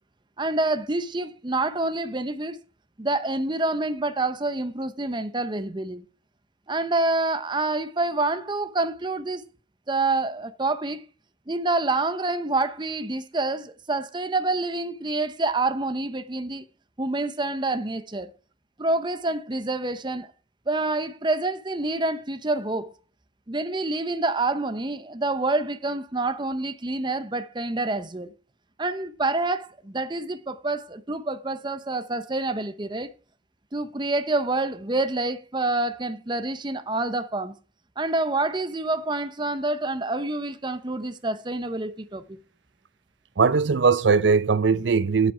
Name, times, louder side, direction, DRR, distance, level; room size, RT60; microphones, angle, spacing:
voice 1, 0.4-2.6 3.0-6.0 6.7-9.4 9.9-11.0 11.5-16.6 17.0-18.3 18.8-20.3 20.7-22.9 23.5-28.3 28.8-33.1 33.7-37.5 38.0-42.4, right 2 dB, 25° right, 0.7 m, -27 dB
voice 2, 43.4-45.3, right 5 dB, 65° right, 0.5 m, -20 dB
8.9 x 8.5 x 4.4 m
head